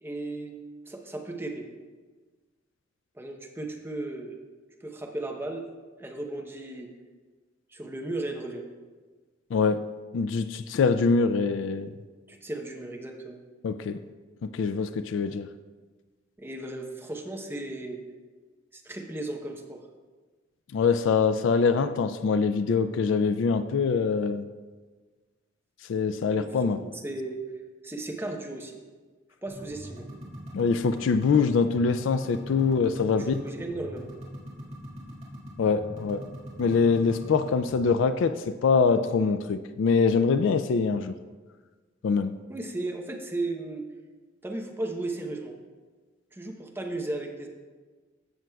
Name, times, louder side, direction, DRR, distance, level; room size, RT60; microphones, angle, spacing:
voice 1, 0.0-0.5 0.9-1.6 3.1-4.4 4.8-5.7 6.0-6.9 7.7-8.6 12.3-13.4 16.4-18.0 18.7-19.8 26.3-27.4 27.8-28.8 29.4-30.0 33.2-34.1 42.5-43.8 44.4-45.5 46.3-47.5, right 2 dB, 10° right, 2 dB, 0.8 m, -35 dB
voice 2, 9.5-11.9 13.6-14.0 14.4-15.5 20.7-24.4 25.9-26.8 30.5-33.4 35.6-36.3 36.6-41.1 42.0-42.3, left 5 dB, 65° left, 11 dB, 0.3 m, -24 dB
sound 1, 29.5-38.0, equal, 35° right, 1.8 m, -42 dB
15.0 x 6.1 x 2.3 m, 1.4 s
head